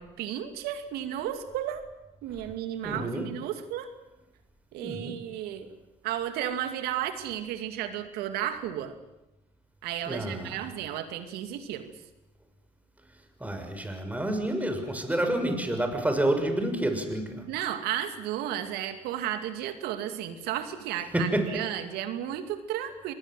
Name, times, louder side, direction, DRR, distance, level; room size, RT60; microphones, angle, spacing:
voice 1, 0.0-1.8 2.2-3.9 4.7-5.7 6.0-9.0 9.8-11.9 17.5-23.1, right 11 dB, 75° right, 9 dB, 2.4 m, -33 dB
voice 2, 2.8-3.3 4.8-5.2 10.1-10.6 13.4-17.5 21.1-21.6, right 1 dB, 10° right, 6 dB, 6.4 m, -29 dB
26.5 x 20.5 x 7.7 m, 0.94 s
hypercardioid pair, 60°, 16 cm